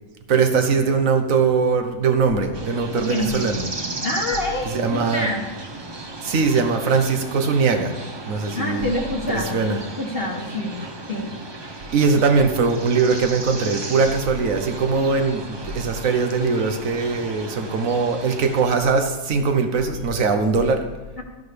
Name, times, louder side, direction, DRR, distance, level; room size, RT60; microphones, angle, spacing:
voice 1, 0.3-3.7 4.7-5.3 6.2-7.9 8.3-8.9 9.3-9.8 11.9-20.8, right 4 dB, 75° right, 6 dB, 1.4 m, -21 dB
sound 1, 2.5-18.6, right 2 dB, 25° right, 0.7 m, -35 dB
voice 2, 3.0-3.4 4.0-5.4 8.6-9.6 9.9-10.8 11.1-11.4 21.2-21.3, left 2 dB, 45° left, -2 dB, 1.2 m, -26 dB
13.0 x 10.5 x 3.4 m, 1.2 s
omnidirectional pair, 1.4 m